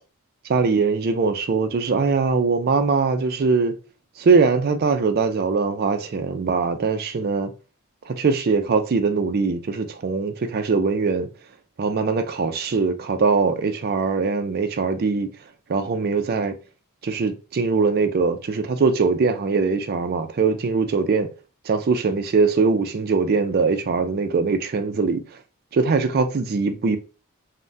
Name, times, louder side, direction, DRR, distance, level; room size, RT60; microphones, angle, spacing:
voice 1, 0.5-3.7 4.2-7.5 8.1-11.3 11.8-15.3 15.7-16.6 17.0-21.3 21.7-25.2 25.7-27.0, right 4 dB, 45° right, 0.4 m, -21 dB
3.4 x 2.1 x 2.6 m
head